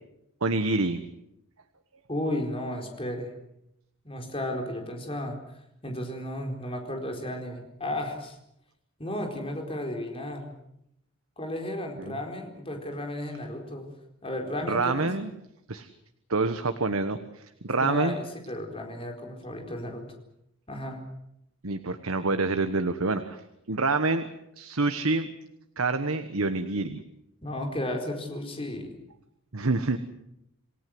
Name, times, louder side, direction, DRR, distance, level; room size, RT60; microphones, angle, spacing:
voice 1, 0.4-1.0 12.0-12.2 14.7-15.3 15.7-15.9 16.3-18.2 21.6-23.4 23.7-24.2 24.6-25.3 25.8-27.0 29.5-30.0, right 3 dB, 75° right, 9 dB, 1.3 m, -27 dB
voice 2, 2.1-3.3 4.0-5.4 5.8-8.3 9.0-10.5 11.4-13.9 14.2-15.1 17.8-20.0 20.7-21.0 27.4-29.0, left 1 dB, 25° left, 2 dB, 4.4 m, -33 dB
28.0 x 17.5 x 7.9 m, 0.81 s
head